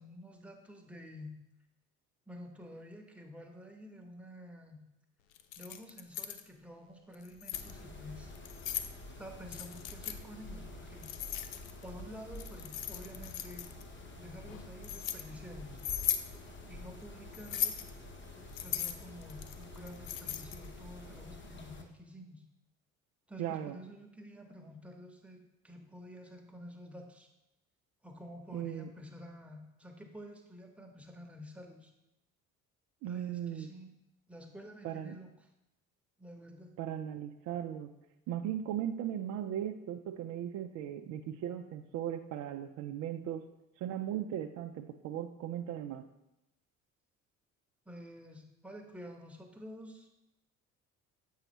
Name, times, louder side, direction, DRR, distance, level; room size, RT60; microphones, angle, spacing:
voice 1, 0.0-1.3 2.3-4.8 5.6-8.3 9.2-11.1 11.8-13.7 14.2-15.8 16.7-17.8 18.5-22.4 23.3-25.4 25.6-27.3 28.0-31.9 33.1-33.9 34.3-35.3 36.2-36.7 47.9-50.1, equal, 5° right, 2 dB, 1.1 m, -49 dB
Keys jangling, 5.4-6.4 7.1-7.7 8.4-8.9 9.5-10.2 11.0-11.9 12.4-13.8 14.5-15.2 15.8-16.3 17.3-17.9 18.5-20.7, left 11 dB, 75° left, 0.5 m, -37 dB
Mechanisms, 7.5-21.8, left 2 dB, 25° left, 1.1 m, -48 dB
voice 2, 23.4-23.8 28.5-28.9 33.0-33.7 34.8-35.2 36.8-37.9 38.3-43.5 43.8-46.1, right 10 dB, 45° right, 6 dB, 0.5 m, -37 dB
7.6 x 5.5 x 3.0 m, 0.90 s
figure-of-eight pair, 55°, 41 cm